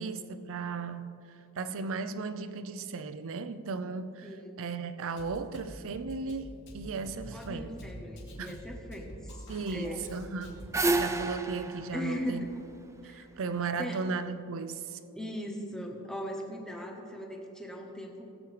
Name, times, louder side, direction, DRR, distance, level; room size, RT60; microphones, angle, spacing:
voice 1, 0.0-4.3 4.6-7.7 8.4-8.6 9.5-10.7 11.0-12.5 13.0-15.0, right 4 dB, 65° right, 0.5 m, -36 dB
voice 2, 4.2-4.6 7.3-9.4 9.7-10.0 11.9-12.5 13.0-13.2 13.8-14.0 15.1-18.2, equal, 5° left, 1.1 m, -39 dB
Drum kit, 5.2-11.2, equal, 60° left, 2.4 m, -46 dB
sound 1, 10.2-13.4, right 3 dB, 15° right, 0.4 m, -31 dB
18.0 x 8.3 x 3.3 m
head